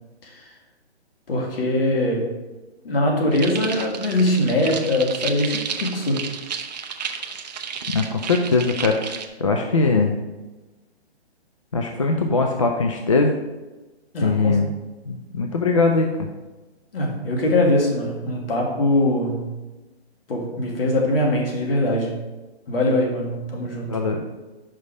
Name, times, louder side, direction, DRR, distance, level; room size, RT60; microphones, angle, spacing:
voice 1, 1.3-2.3 2.8-6.2 14.1-14.6 16.9-19.6 20.3-22.2 22.7-24.0, left 1 dB, 60° left, 0 dB, 2.0 m, -22 dB
sound 1, 3.3-9.3, right 6 dB, 40° right, 0.6 m, -32 dB
voice 2, 7.9-10.1 11.7-13.3 14.2-14.7 15.1-16.3 23.9-24.2, left 3 dB, 30° left, 3 dB, 0.4 m, -21 dB
5.4 x 5.3 x 4.8 m, 1.1 s
hypercardioid pair, 150°, 33 cm